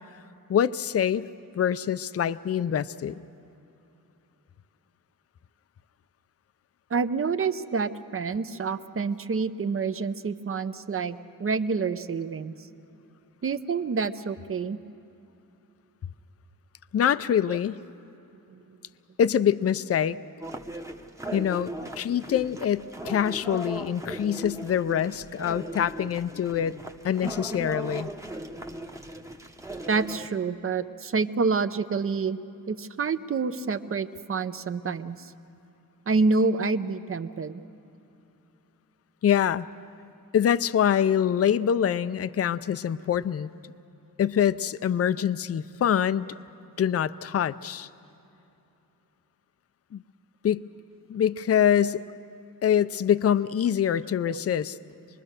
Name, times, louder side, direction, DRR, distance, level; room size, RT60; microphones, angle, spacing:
voice 1, 0.5-1.3 1.5-3.2 16.9-17.8 19.2-20.2 21.3-26.8 27.0-28.1 39.2-39.7 40.3-43.5 44.2-46.3 46.8-47.9 49.9-50.0 50.4-50.7 51.1-52.0 52.6-54.8, left 9 dB, 45° left, 15 dB, 0.5 m, -25 dB
voice 2, 6.9-12.7 13.4-14.8 18.5-18.8 29.9-32.4 32.7-35.3 36.1-37.6 54.3-54.4, right 4 dB, 40° right, 11 dB, 0.7 m, -28 dB
sound 1, 20.4-30.3, right 1 dB, 10° right, 0.9 m, -38 dB
26.0 x 21.0 x 6.6 m, 2.9 s
wide cardioid pair, 125°, 35 cm